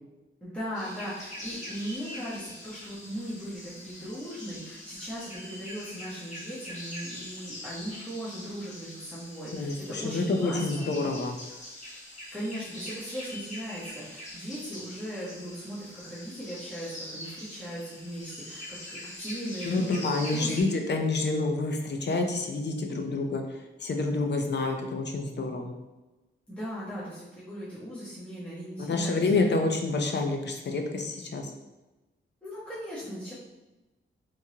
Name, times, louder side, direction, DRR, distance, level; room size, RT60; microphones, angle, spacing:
voice 1, 0.4-10.9 11.8-12.0 12.3-20.7 26.5-29.2 32.4-33.3, equal, 5° left, -11 dB, 1.1 m, -38 dB
sound 1, 0.7-20.6, left 1 dB, 35° left, 1.3 m, -43 dB
voice 2, 9.5-11.4 19.6-23.4 23.8-25.7 28.9-31.5, left 3 dB, 55° left, 4 dB, 0.6 m, -28 dB
3.5 x 3.1 x 2.8 m, 1.1 s
wide cardioid pair, 90°, 21 cm